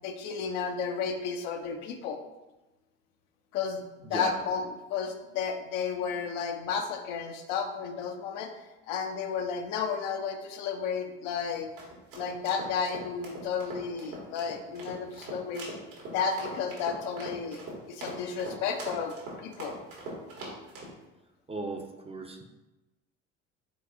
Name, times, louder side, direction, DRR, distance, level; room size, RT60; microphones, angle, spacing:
voice 1, 0.0-2.2 3.5-8.5 8.9-11.7 12.1-15.7 16.1-17.6 17.9-19.8, left 6 dB, 70° left, 5 dB, 0.6 m, -32 dB
sound 1, 11.5-20.9, right 2 dB, 75° right, 1.5 m, -41 dB
voice 2, 21.5-22.4, right 3 dB, 15° right, 3 dB, 0.5 m, -37 dB
4.6 x 4.0 x 2.7 m, 1.1 s
hypercardioid pair, 60°, 38 cm